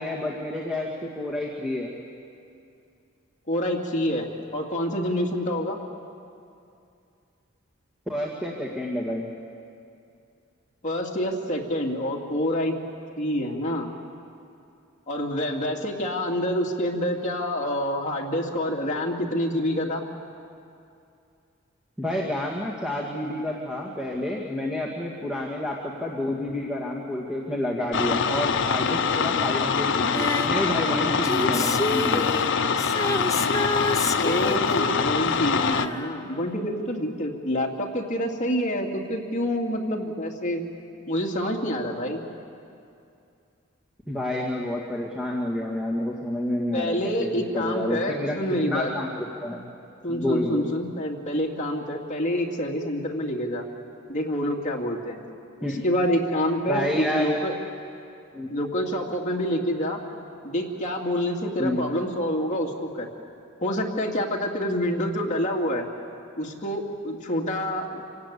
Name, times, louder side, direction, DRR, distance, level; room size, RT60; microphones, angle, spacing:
voice 1, 0.0-1.9 8.1-9.3 22.0-32.3 44.1-48.4 48.7-49.7 50.1-50.7 55.6-55.8 56.7-57.3 58.3-58.5 61.6-61.9, left 1 dB, 5° right, -2 dB, 2.0 m, -29 dB
voice 2, 3.5-5.8 10.8-12.8 13.2-13.9 15.1-20.0 34.2-40.6 41.1-42.2 46.7-48.9 50.0-53.6 54.1-55.2 55.6-57.5 58.5-60.0 60.4-63.1 63.6-65.8 66.4-68.0, equal, 40° left, -1 dB, 2.5 m, -27 dB
sound 1, 27.9-35.9, left 5 dB, 65° left, 0.8 m, -24 dB
Female singing, 30.1-36.7 37.0-37.1, left 2 dB, 15° left, 0.8 m, -30 dB
26.5 x 18.0 x 8.5 m, 2.6 s
head